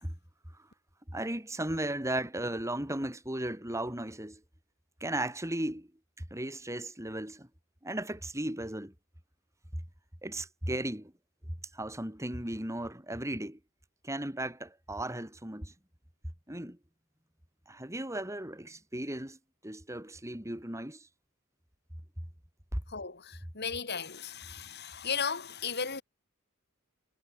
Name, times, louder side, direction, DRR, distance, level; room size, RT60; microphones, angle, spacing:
voice 1, 1.1-4.4 5.0-5.9 6.3-7.5 7.8-8.9 10.2-11.1 11.7-13.6 14.0-15.7 16.5-16.8 17.7-19.4 19.6-21.1 22.7-22.8, right 1 dB, 15° right, 3.0 m, -36 dB
voice 2, 22.9-26.0, left 6 dB, 50° left, 3.9 m, -35 dB
head